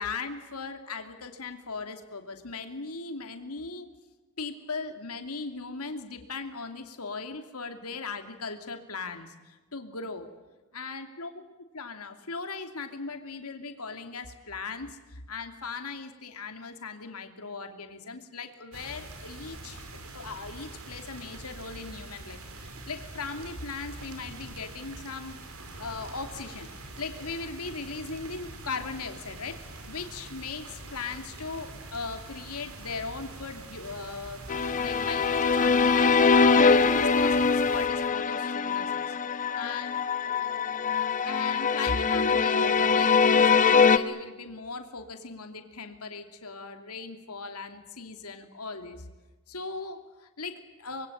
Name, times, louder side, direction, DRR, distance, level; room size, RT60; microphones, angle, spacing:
voice 1, 0.0-3.9 4.4-10.3 10.7-11.4 11.7-19.8 20.1-25.4 25.8-26.7 27.0-29.6 29.9-34.4 34.8-39.2 39.5-40.0 41.2-49.1 49.5-51.1, left 4 dB, 85° left, 6 dB, 2.7 m, -38 dB
sound 1, 18.7-37.9, right 2 dB, 70° right, 4.7 m, -44 dB
sound 2, 34.5-44.0, left 5 dB, 35° left, 1.0 m, -23 dB
26.0 x 22.0 x 8.8 m, 1.2 s
head